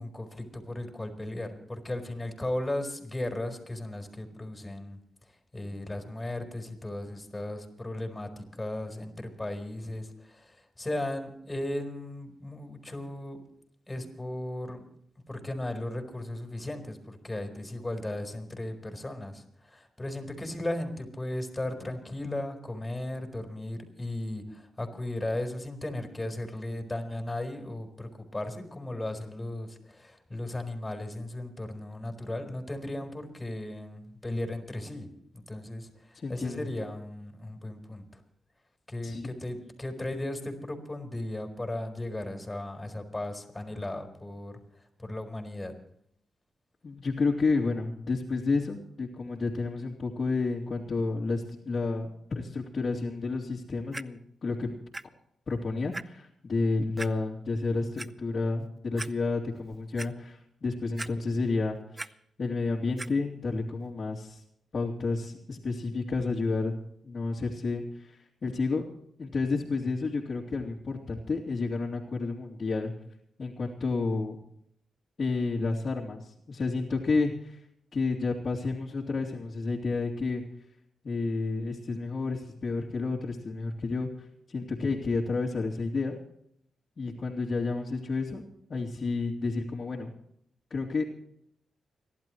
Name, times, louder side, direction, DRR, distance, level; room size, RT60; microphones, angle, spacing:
voice 1, 0.0-5.0 5.5-13.4 13.9-14.8 15.3-35.1 35.3-38.0 38.9-44.6 45.0-45.7, left 1 dB, 20° left, 4 dB, 4.3 m, -36 dB
voice 2, 36.1-36.6 39.0-39.3 46.8-54.7 55.5-61.8 62.0-62.1 62.4-64.4 64.7-66.7 67.0-68.8 69.2-72.9 73.4-74.4 75.2-77.6 77.9-80.4 81.0-84.1 84.5-86.2 87.0-88.4 88.7-90.1 90.7-91.0, left 3 dB, 55° left, -6 dB, 2.8 m, -30 dB
Clock, 53.9-54.0 54.9-55.0 55.5-55.6 55.9-56.0 57.0-57.1 57.7-58.1 58.6-58.7 59.0-59.1 59.6-60.1 61.0-61.5 61.8-62.1 63.0-63.1 63.8-63.9, right 2 dB, 25° right, 0.6 m, -38 dB
29.5 x 12.0 x 3.1 m, 0.70 s
cardioid pair, 55°, 0 cm